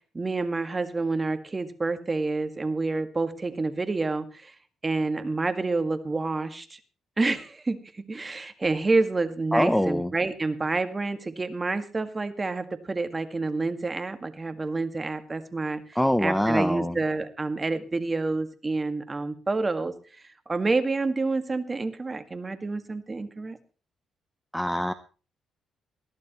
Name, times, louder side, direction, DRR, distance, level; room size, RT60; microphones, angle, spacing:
voice 1, 0.1-4.5 4.8-6.8 7.2-19.9 20.5-23.6, right 3 dB, 25° right, 9 dB, 1.9 m, -28 dB
voice 2, 9.5-10.1 16.0-17.0 24.5-24.9, equal, 5° left, 11 dB, 0.8 m, -24 dB
20.5 x 13.5 x 3.1 m, 0.36 s
cardioid pair, 90°, 0 cm